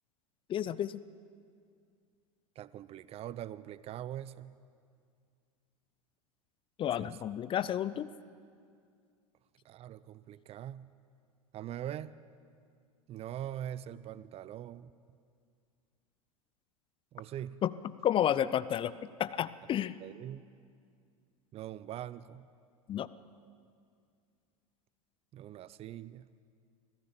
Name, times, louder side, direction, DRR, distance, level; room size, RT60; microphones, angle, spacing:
voice 1, 0.5-1.0 6.8-8.1 17.6-17.7 18.0-18.9 19.2-20.0 22.9-23.1, left 10 dB, 30° left, 16 dB, 0.6 m, -31 dB
voice 2, 2.6-4.5 7.0-7.1 9.6-10.9 11.5-12.1 13.1-14.9 17.1-17.6 20.0-20.5 21.5-22.5 25.3-26.3, right 11 dB, 35° right, 18 dB, 0.6 m, -42 dB
24.5 x 15.5 x 7.0 m, 2.2 s
figure-of-eight pair, 85°, 18 cm